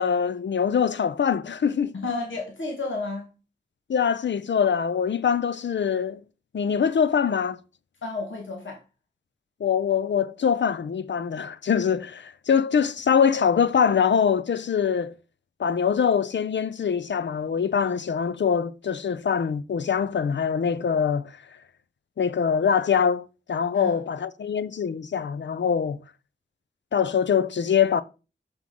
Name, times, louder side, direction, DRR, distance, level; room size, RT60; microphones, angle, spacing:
voice 1, 0.0-2.0 3.9-6.2 6.5-7.6 9.6-15.1 15.6-21.3 22.2-26.0 26.9-28.0, left 7 dB, 70° left, 0.5 m, -23 dB
voice 2, 1.9-3.3 8.0-8.8 23.7-24.0, left 3 dB, 85° left, 1.5 m, -31 dB
6.1 x 5.8 x 3.7 m
cardioid pair, 55°, 19 cm